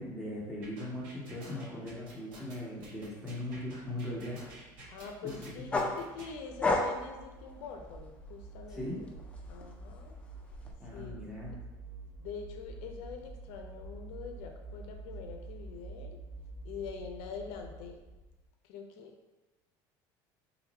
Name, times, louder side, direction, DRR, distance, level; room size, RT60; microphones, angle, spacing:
voice 1, 0.0-4.5 5.2-5.3 5.7-5.8 8.7-9.0 10.8-11.5, left 1 dB, 5° right, -6 dB, 1.0 m, -39 dB
sound 1, 0.6-6.3, right 1 dB, 85° right, 1.0 m, -50 dB
sound 2, 3.8-18.4, right 2 dB, 55° right, 1.1 m, -48 dB
voice 2, 4.9-9.1 9.5-10.2 10.9-11.2 12.2-16.2 16.6-18.0 18.6-19.3, left 5 dB, 80° left, 3 dB, 0.5 m, -44 dB
sound 3, 5.7-8.3 8.7-10.7, left 2 dB, 15° left, 0.4 m, -33 dB
3.0 x 2.5 x 4.0 m, 1.1 s
cardioid pair, 140°, 9 cm